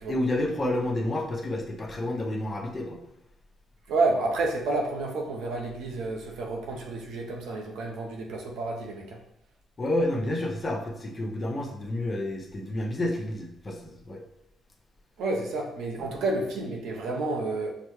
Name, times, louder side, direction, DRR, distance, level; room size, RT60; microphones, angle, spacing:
voice 1, 0.1-3.0 9.8-14.2 16.0-16.2, left 1 dB, 30° left, 0 dB, 0.8 m, -30 dB
voice 2, 3.9-9.2 15.2-17.7, right 2 dB, 85° right, 1 dB, 0.8 m, -30 dB
5.9 x 2.2 x 3.1 m, 0.78 s
cardioid pair, 90°, 0 cm